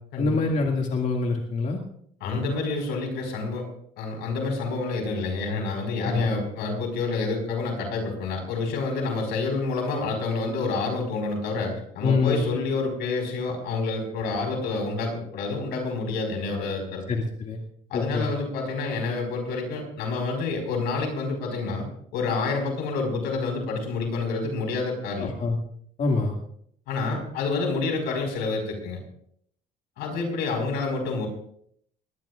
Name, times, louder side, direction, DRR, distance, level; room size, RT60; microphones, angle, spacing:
voice 1, 0.2-1.8 6.0-6.3 12.0-12.5 17.1-17.6 17.9-18.3 25.2-25.6 26.0-26.4, left 3 dB, 50° left, 1 dB, 2.2 m, -25 dB
voice 2, 2.2-3.6 4.0-17.0 17.9-21.8 22.1-25.3 26.9-29.0 30.0-31.3, left 3 dB, 90° left, 3 dB, 5.0 m, -28 dB
21.5 x 17.5 x 2.5 m, 0.67 s
cardioid pair, 110°, 17 cm